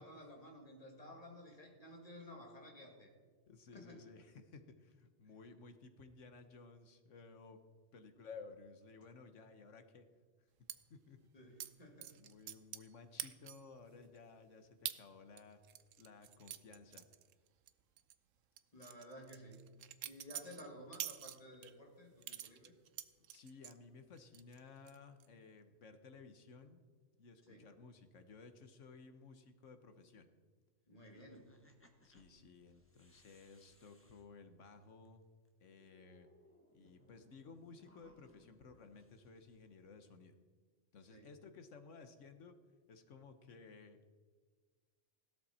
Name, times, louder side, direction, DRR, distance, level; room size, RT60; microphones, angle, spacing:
voice 1, 0.0-3.1 3.7-4.0 11.3-12.2 18.7-19.6 20.0-22.7 27.5-27.7 30.9-31.6 41.1-41.3, left 1 dB, 30° left, 0 dB, 2.5 m, -54 dB
voice 2, 3.5-7.6 7.9-10.1 10.9-11.2 12.2-15.6 16.0-17.1 20.3-20.6 23.3-26.8 27.2-30.3 32.0-35.2 35.6-36.3 36.7-40.3 40.9-42.6 42.9-44.0, left 4 dB, 75° left, 8 dB, 1.5 m, -57 dB
sound 1, 10.7-10.8 11.6-11.7 12.0-12.9 13.2-13.7 14.2-14.3 14.9-15.0 15.4-17.7 18.0-18.1 18.6-21.7 22.2-23.8 24.2-24.6 24.9-25.3, right 11 dB, 85° right, 1.1 m, -46 dB
sound 2, 30.9-35.1 35.4-35.5 35.8-39.9, left 1 dB, 10° left, 1.2 m, -69 dB
16.5 x 12.5 x 4.3 m, 1.5 s
omnidirectional pair, 1.3 m